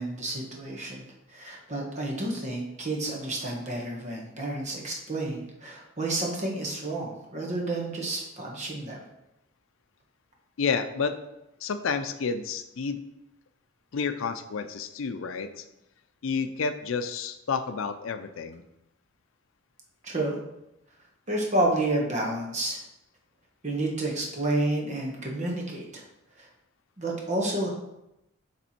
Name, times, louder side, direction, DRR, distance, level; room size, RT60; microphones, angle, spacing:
voice 1, 0.0-9.0 20.0-20.4 21.3-22.8 23.6-26.0 26.4-26.5 27.0-27.7, right 2 dB, 35° right, -1 dB, 1.3 m, -30 dB
voice 2, 10.6-11.2 11.6-13.0 13.9-15.6 16.2-18.6, left 5 dB, 85° left, 10 dB, 0.5 m, -30 dB
7.2 x 3.4 x 4.3 m, 0.88 s
head